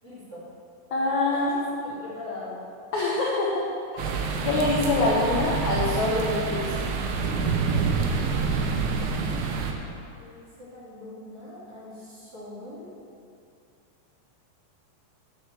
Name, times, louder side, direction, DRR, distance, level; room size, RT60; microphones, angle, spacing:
voice 1, 0.0-0.4 1.3-2.6 10.2-12.9, left 2 dB, 35° right, -8 dB, 3.3 m, -41 dB
voice 2, 0.9-1.5 2.9-3.7 3.9-4.1 4.4-6.8, left 2 dB, 75° left, -4 dB, 1.7 m, -25 dB
sound 1, 4.0-9.7, right 4 dB, 75° right, 2.5 m, -27 dB
9.5 x 6.6 x 7.2 m, 2.5 s
omnidirectional pair, 5.1 m